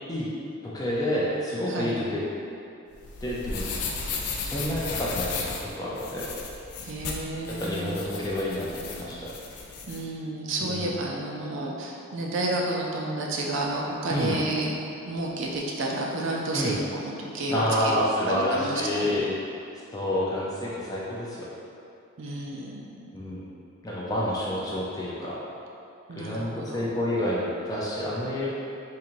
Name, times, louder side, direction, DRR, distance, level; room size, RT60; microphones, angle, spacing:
voice 1, 0.6-2.2 3.2-3.6 4.4-6.3 7.5-9.3 10.6-11.0 14.1-14.4 16.5-16.7 17.5-19.3 19.9-21.5 23.1-23.4 23.8-25.4 26.2-28.5, left 1 dB, 15° left, -6 dB, 0.4 m, -29 dB
sound 1, 2.9-10.0, left 4 dB, 90° left, 0.4 m, -35 dB
voice 2, 6.8-8.0 9.9-14.7 15.0-19.3 22.2-23.0 23.2-23.3 26.1-26.9, right 2 dB, 60° right, -2 dB, 0.4 m, -31 dB
3.7 x 2.6 x 3.0 m, 2.7 s
head